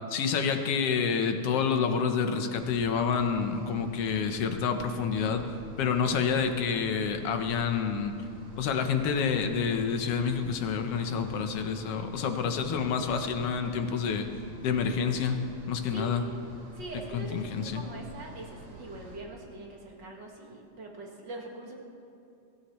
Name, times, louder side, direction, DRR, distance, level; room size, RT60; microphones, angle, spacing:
voice 1, 0.1-5.4 5.8-8.1 8.6-14.3 14.6-15.4 15.7-16.2 17.1-17.8, left 6 dB, 65° left, 6 dB, 1.8 m, -28 dB
sound 1, 2.5-19.2, right 2 dB, 85° right, 3.9 m, -49 dB
voice 2, 16.7-21.7, right 2 dB, 40° right, -1 dB, 2.2 m, -42 dB
23.5 x 16.0 x 3.2 m, 2.6 s
omnidirectional pair, 3.3 m